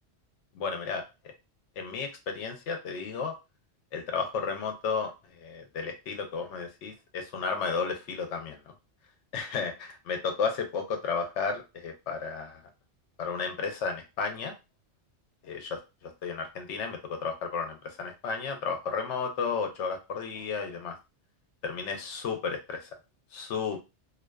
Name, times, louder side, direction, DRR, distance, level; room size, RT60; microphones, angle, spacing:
voice 1, 0.5-1.3 1.8-3.3 3.9-8.6 9.3-12.6 13.2-14.5 15.4-21.0 21.6-22.9 23.3-23.8, left 5 dB, 80° left, 5 dB, 0.9 m, -33 dB
2.5 x 2.3 x 2.2 m, 0.26 s
omnidirectional pair, 1.2 m